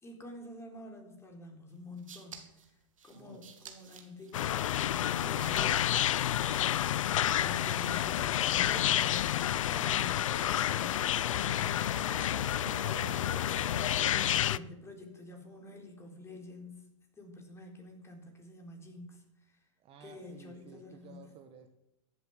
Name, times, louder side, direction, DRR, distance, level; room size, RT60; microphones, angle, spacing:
voice 1, 0.0-2.5 3.0-5.9 7.2-12.1 12.6-16.8 17.2-19.6 20.0-21.2, left 1 dB, 15° left, 2 dB, 4.0 m, -48 dB
sound 1, 1.7-8.3, right 7 dB, 90° right, 2.3 m, -54 dB
voice 2, 3.1-3.5 12.1-12.6 19.8-21.7, right 6 dB, 35° right, 6 dB, 1.6 m, -55 dB
sound 2, 4.3-14.6, left 12 dB, 80° left, 0.5 m, -29 dB
sound 3, 10.3-14.1, right 9 dB, 65° right, 1.9 m, -48 dB
14.5 x 8.0 x 9.0 m, 0.85 s
hypercardioid pair, 115°, 17 cm